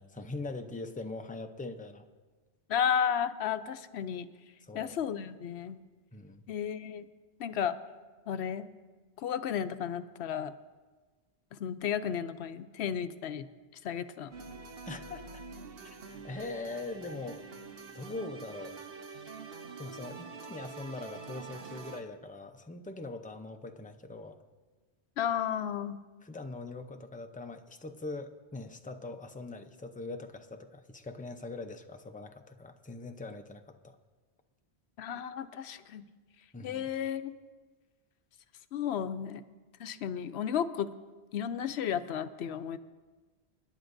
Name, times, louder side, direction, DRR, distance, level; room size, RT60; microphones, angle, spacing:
voice 1, 0.0-2.1 4.6-5.0 6.1-6.4 14.9-15.4 15.8-17.5 17.9-18.8 19.8-24.4 26.2-34.0 36.5-36.9, left 3 dB, 10° left, 5 dB, 0.5 m, -42 dB
voice 2, 2.7-4.3 4.7-5.8 6.5-7.0 7.4-7.8 8.3-8.7 9.2-10.5 11.5-13.5 13.8-14.3 25.2-26.0 35.0-36.0 36.6-37.3 38.7-39.4 39.8-40.9 41.3-42.8, left 8 dB, 75° left, 11 dB, 0.9 m, -33 dB
sound 1, 14.3-22.0, right 4 dB, 65° right, 1.1 m, -46 dB
26.5 x 10.5 x 2.6 m, 1.3 s
omnidirectional pair, 1.1 m